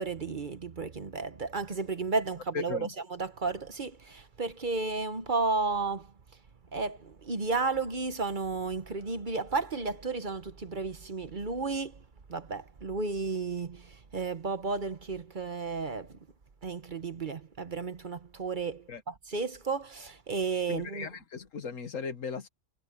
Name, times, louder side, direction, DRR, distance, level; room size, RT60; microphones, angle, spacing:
voice 1, 0.0-2.8 3.1-6.1 6.7-12.0 12.3-16.2 16.6-21.1, right 4 dB, 40° right, 1.1 m, -33 dB
voice 2, 2.5-2.9 18.9-19.0 20.7-22.5, left 5 dB, 85° left, 1.8 m, -37 dB
omnidirectional pair, 1.3 m